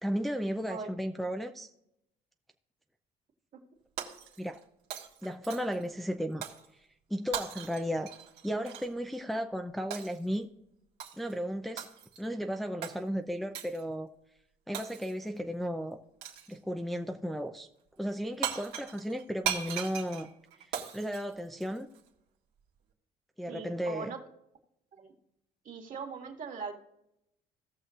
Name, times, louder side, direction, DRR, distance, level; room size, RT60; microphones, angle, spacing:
voice 1, 0.0-1.7 4.4-4.6 5.2-6.4 7.1-8.1 8.4-10.5 11.2-11.9 12.2-14.1 14.7-16.0 16.5-17.7 18.0-20.3 20.6-21.9 23.4-24.1, equal, ahead, 4 dB, 0.5 m, -34 dB
Shatter, 4.0-4.6 4.9-5.9 6.4-6.7 7.3-8.9 9.9-10.2 11.0-11.3 11.8-12.3 12.8-13.0 13.5-13.8 14.7-15.3 16.2-16.6 18.1-18.2 18.4-22.0, right 9 dB, 85° right, 1.8 m, -39 dB
voice 2, 23.5-24.2 24.9-25.1 25.6-26.7, right 5 dB, 50° right, 3 dB, 2.0 m, -40 dB
17.0 x 6.4 x 2.5 m, 0.82 s
cardioid pair, 110°, 17 cm